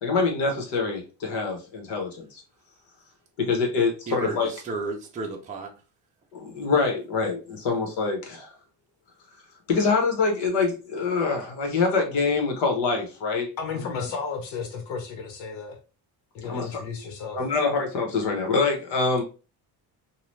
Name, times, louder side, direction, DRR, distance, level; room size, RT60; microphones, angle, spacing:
voice 1, 0.0-2.4 3.4-4.5 6.3-8.5 9.7-13.5 13.7-13.8 16.4-16.8 17.3-19.2, left 4 dB, 70° left, 3 dB, 1.3 m, -25 dB
voice 2, 3.8-5.7, right 3 dB, 20° right, 0 dB, 0.5 m, -33 dB
voice 3, 13.6-15.8 16.3-17.4, left 5 dB, 85° left, 4 dB, 1.1 m, -33 dB
2.9 x 2.4 x 3.2 m, 0.32 s
cardioid pair, 165°, 43 cm